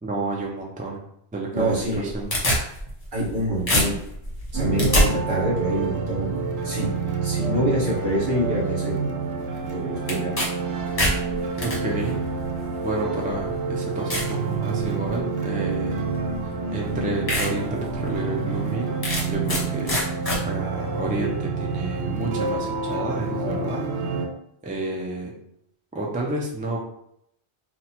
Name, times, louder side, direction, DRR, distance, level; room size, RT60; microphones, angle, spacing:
voice 1, 0.0-1.0 1.3-2.3 11.6-12.2 12.8-16.1 16.4-19.0 19.3-19.9 20.4-23.8 24.6-25.3 25.9-26.9, right 2 dB, 15° right, -2 dB, 0.3 m, -30 dB
voice 2, 1.5-2.1 3.1-4.0 4.5-6.3 6.6-6.9 7.2-9.0 9.7-10.4, right 1 dB, 50° right, -5 dB, 1.4 m, -26 dB
sound 1, 1.8-3.4 3.7-5.0 10.1-10.5 10.8-11.8 12.6-12.7 13.4-13.5 14.1-14.3 14.8-15.2 16.3-16.4 16.9-17.0 17.3-17.5 17.9-18.0 19.0-19.6 19.9-20.4, equal, 35° left, 1.0 m, -23 dB
sound 2, 4.5-24.3, right 4 dB, 80° right, 0.8 m, -28 dB
2.8 x 2.3 x 4.1 m, 0.74 s
omnidirectional pair, 1.1 m